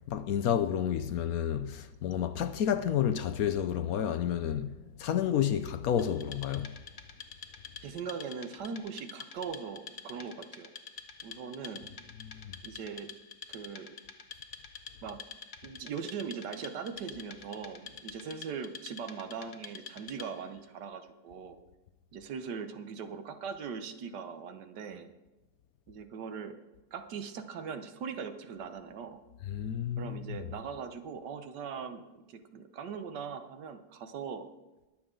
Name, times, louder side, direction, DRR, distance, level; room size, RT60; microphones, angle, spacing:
voice 1, 0.1-6.8 12.2-12.5 29.5-30.2, left 9 dB, 70° left, 1.0 m, -30 dB
Wood, 6.0-20.5, left 6 dB, 40° left, 0.7 m, -48 dB
voice 2, 7.8-10.7 11.2-11.9 12.6-13.1 13.5-13.9 15.0-15.2 15.6-21.6 22.1-25.1 25.9-26.6 26.9-29.2 30.0-34.5, right 6 dB, 80° right, 1.5 m, -40 dB
21.5 x 7.3 x 3.8 m
omnidirectional pair, 1.8 m